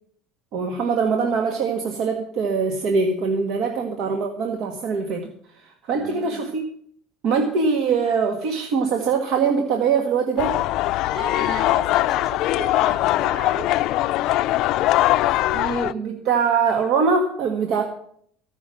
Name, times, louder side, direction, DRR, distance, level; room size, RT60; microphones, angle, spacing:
voice 1, 0.5-5.3 5.9-6.6 7.2-10.6 15.5-17.8, right 5 dB, 60° right, 3 dB, 1.6 m, -22 dB
voice 2, 5.9-6.4 11.1-13.8, right 1 dB, 35° right, 1 dB, 5.3 m, -35 dB
sound 1, 10.4-15.9, left 15 dB, 60° left, 0.4 m, -21 dB
15.0 x 6.1 x 7.7 m, 0.64 s
cardioid pair, 125°, 0 cm